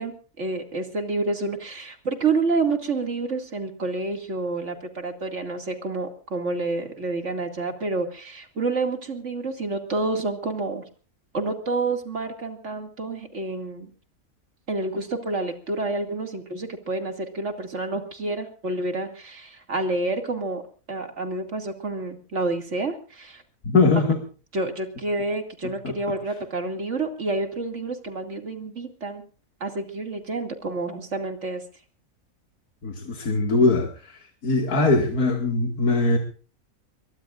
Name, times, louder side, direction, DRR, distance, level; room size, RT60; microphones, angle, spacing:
voice 1, 0.0-10.9 11.3-13.9 14.7-20.6 20.9-23.4 24.5-29.2 29.6-31.6, right 3 dB, 55° right, 5 dB, 2.8 m, -29 dB
voice 2, 23.6-24.2 32.8-36.2, left 3 dB, 80° left, 2 dB, 2.6 m, -21 dB
23.0 x 22.5 x 2.5 m, 0.37 s
omnidirectional pair, 1.5 m